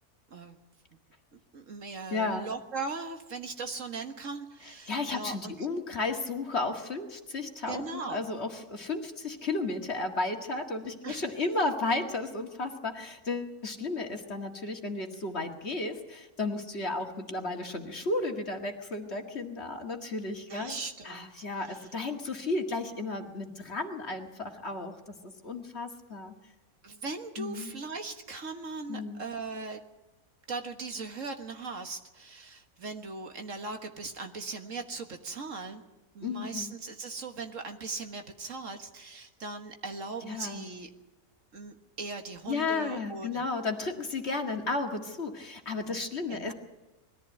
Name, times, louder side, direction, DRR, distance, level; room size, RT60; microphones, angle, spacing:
voice 1, 1.3-5.5 7.7-8.2 11.0-11.2 20.5-21.3 21.7-21.8 26.8-29.8 30.5-35.8 36.2-40.9 41.5-43.4 46.3-46.5, right 3 dB, 55° right, 6 dB, 1.8 m, -39 dB
voice 2, 2.1-2.4 4.6-20.8 21.0-26.3 27.4-27.7 28.9-29.2 36.2-36.7 40.2-40.6 42.5-46.5, left 3 dB, 45° left, 4 dB, 2.1 m, -33 dB
21.0 x 14.5 x 9.1 m, 1.1 s
omnidirectional pair, 1.6 m